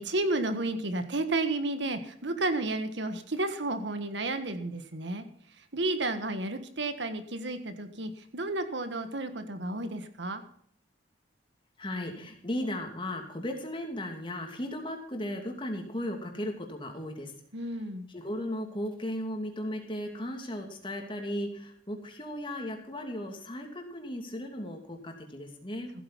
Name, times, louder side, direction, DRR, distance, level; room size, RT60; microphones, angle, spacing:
voice 1, 0.0-5.2 5.6-10.4 17.5-18.1, right 2 dB, 70° right, 8 dB, 1.5 m, -32 dB
voice 2, 11.8-17.3 18.1-25.9, left 1 dB, 25° left, 3 dB, 2.7 m, -36 dB
15.5 x 8.9 x 5.8 m, 0.63 s
head